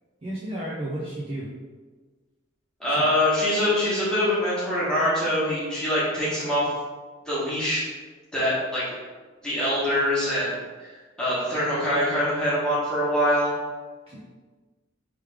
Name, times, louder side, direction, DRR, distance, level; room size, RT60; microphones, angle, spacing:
voice 1, 0.2-1.5 2.9-3.0 14.1-14.2, right 1 dB, 30° right, -6 dB, 0.5 m, -32 dB
voice 2, 2.8-6.7 7.2-7.8 8.3-8.8 9.4-10.5 10.8-13.5, equal, 5° left, -10 dB, 1.3 m, -24 dB
3.3 x 3.2 x 3.5 m, 1.4 s
head